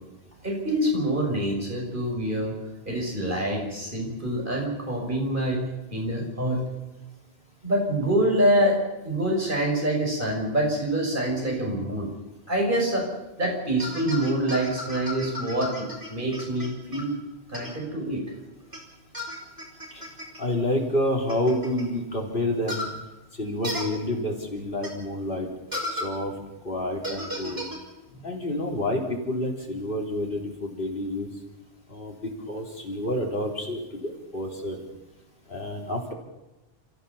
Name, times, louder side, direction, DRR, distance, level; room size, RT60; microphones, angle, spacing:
voice 1, 0.4-2.5 2.9-5.6 5.9-6.6 7.6-8.8 9.0-12.1 12.5-13.1 13.4-17.1 17.5-18.2, right 1 dB, 55° right, -1 dB, 6.3 m, -26 dB
sound 1, 13.8-17.0 17.5-17.7 18.7-18.8 19.1-20.4 21.3-21.8 22.7-22.9 23.6-23.8 24.8-24.9 25.7-26.1 27.0-27.8, left 1 dB, 20° right, 4.6 m, -34 dB
voice 2, 20.4-22.9 23.3-25.5 25.9-27.6 28.2-31.3 31.9-34.8 35.5-36.1, left 1 dB, 60° left, 0 dB, 3.8 m, -29 dB
28.5 x 14.5 x 7.1 m, 1.0 s
omnidirectional pair, 1.0 m